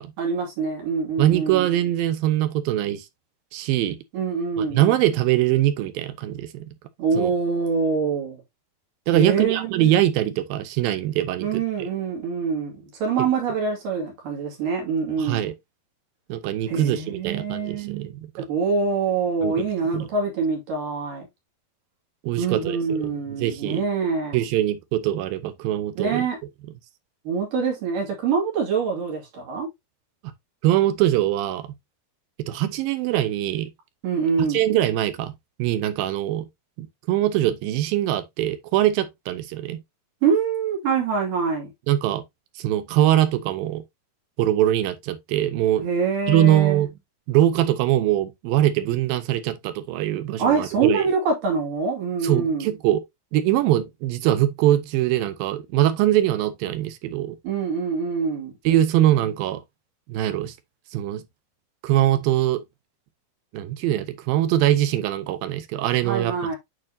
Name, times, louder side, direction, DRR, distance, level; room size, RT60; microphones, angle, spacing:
voice 1, 0.2-1.7 4.1-4.9 7.0-8.4 9.1-9.9 11.4-15.5 16.7-18.1 18.5-21.3 22.4-24.4 26.0-26.4 27.3-29.7 34.0-34.6 40.2-41.7 45.8-46.9 50.4-52.7 57.4-58.5 66.0-66.6, right 5 dB, 60° right, 3.9 m, -25 dB
voice 2, 1.2-3.0 3.5-4.0 4.6-6.7 7.2-7.3 9.1-11.9 15.2-15.5 16.3-18.5 19.4-19.7 19.9-20.1 22.2-23.1 23.4-23.9 24.3-26.2 30.6-31.6 32.5-33.7 34.4-35.3 35.6-36.5 36.8-39.8 41.9-42.2 42.6-43.8 44.4-45.9 46.3-46.9 47.3-51.1 52.2-53.0 53.3-57.4 58.7-59.6 60.1-60.5 60.9-61.2 61.8-62.6 63.5-66.3, right 13 dB, 80° right, 2.4 m, -22 dB
8.8 x 4.5 x 2.7 m
omnidirectional pair, 4.3 m